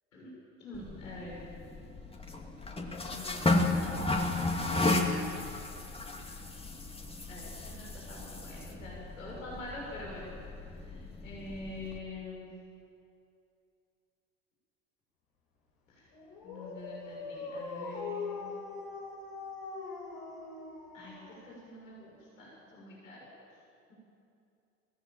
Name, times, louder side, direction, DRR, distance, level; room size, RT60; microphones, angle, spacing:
voice 1, 0.6-1.5 3.0-4.1 7.3-10.3 10.7-12.5 15.9-16.0 16.4-18.5 20.9-21.1 21.4-23.2, left 2 dB, 85° left, -4 dB, 6.8 m, -45 dB
sound 1, 0.7-12.0, left 2 dB, 15° left, 2.4 m, -34 dB
Dog, 16.1-21.8, left 4 dB, 65° left, 5.8 m, -41 dB
23.0 x 17.5 x 7.6 m, 2.6 s
hypercardioid pair, 80°, 39 cm